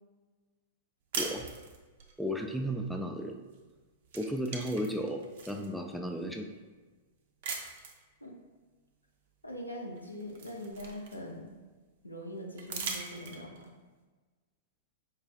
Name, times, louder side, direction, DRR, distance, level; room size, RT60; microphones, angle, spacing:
sound 1, 1.1-2.1 3.5-3.7 4.0-5.7 6.3-6.4 7.4-8.0 9.5-9.6 10.0-11.5 12.6-13.7, right 5 dB, 55° right, 0.5 m, -40 dB
voice 1, 2.2-3.4 4.1-6.5, equal, ahead, 2 dB, 0.3 m, -34 dB
voice 2, 9.4-11.6 12.0-13.7, equal, 90° left, 0 dB, 0.5 m, -42 dB
4.6 x 2.4 x 2.3 m, 1.3 s
figure-of-eight pair, 100°, 0 cm